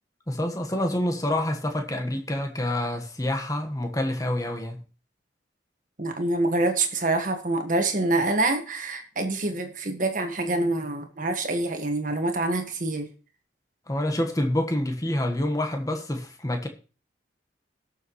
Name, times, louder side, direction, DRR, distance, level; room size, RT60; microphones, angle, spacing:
voice 1, 0.3-4.8 13.9-16.7, left 1 dB, 20° left, 1.4 m, -27 dB
voice 2, 6.0-13.1, right 2 dB, 45° right, 1.6 m, -26 dB
18.0 x 6.9 x 3.1 m
head